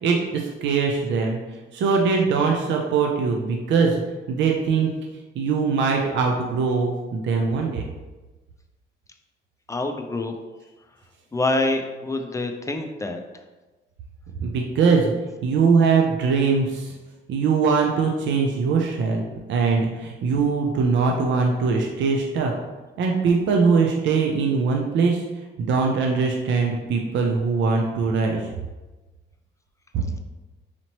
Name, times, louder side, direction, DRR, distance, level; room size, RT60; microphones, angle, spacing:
voice 1, 0.0-1.4 1.7-4.0 4.3-4.9 5.4-7.9 14.4-15.1 15.4-16.9 17.3-19.2 19.5-22.5 23.0-25.2 25.6-28.5 29.9-30.0, right 5 dB, 70° right, 1 dB, 0.5 m, -21 dB
voice 2, 9.7-10.3 11.3-13.2, left 2 dB, 15° left, 5 dB, 0.4 m, -26 dB
4.2 x 2.9 x 2.9 m, 1.2 s
cardioid pair, 90°, 20 cm